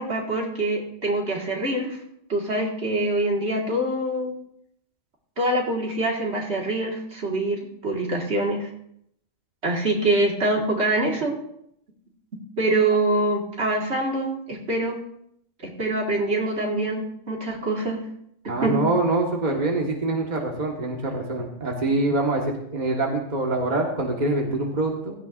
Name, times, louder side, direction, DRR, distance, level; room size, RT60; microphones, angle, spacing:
voice 1, 0.0-2.0 2.3-4.3 5.4-8.7 9.6-11.4 12.6-15.0 15.6-18.0 18.6-18.8, right 2 dB, 65° right, 0 dB, 2.2 m, -24 dB
voice 2, 18.5-25.1, right 2 dB, 35° right, 0 dB, 1.7 m, -25 dB
16.5 x 13.0 x 2.6 m, 0.72 s
omnidirectional pair, 1.2 m